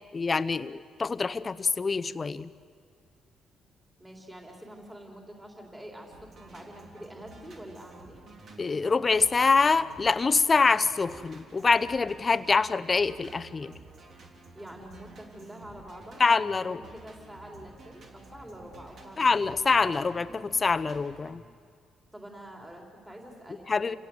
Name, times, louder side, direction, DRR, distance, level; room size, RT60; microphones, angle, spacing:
voice 1, 0.1-2.5 8.6-13.7 16.2-16.8 19.2-21.4 23.7-24.0, left 4 dB, 30° left, 12 dB, 0.8 m, -25 dB
voice 2, 4.0-8.3 14.5-19.4 19.8-20.0 22.1-24.0, right 1 dB, 10° right, 0 dB, 3.7 m, -46 dB
sound 1, 6.1-21.4, right 3 dB, 55° right, 3.7 m, -51 dB
29.0 x 17.5 x 7.9 m, 2.2 s
cardioid pair, 90°, 0 cm